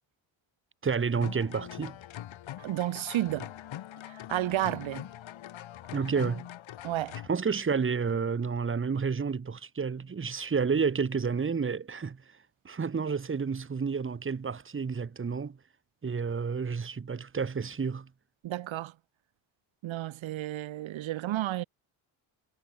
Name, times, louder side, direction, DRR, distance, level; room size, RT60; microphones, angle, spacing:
voice 1, 0.8-2.0 5.9-6.5 7.3-12.2 12.6-15.6 16.0-18.1, right 5 dB, 25° right, 1.7 m, -30 dB
sound 1, 1.2-7.3, left 12 dB, 75° left, 4.1 m, -43 dB
voice 2, 2.6-3.5 4.0-5.1 6.8-7.2 18.4-18.9 19.8-21.6, right 14 dB, 75° right, 1.4 m, -32 dB
cardioid pair, 105°, 47 cm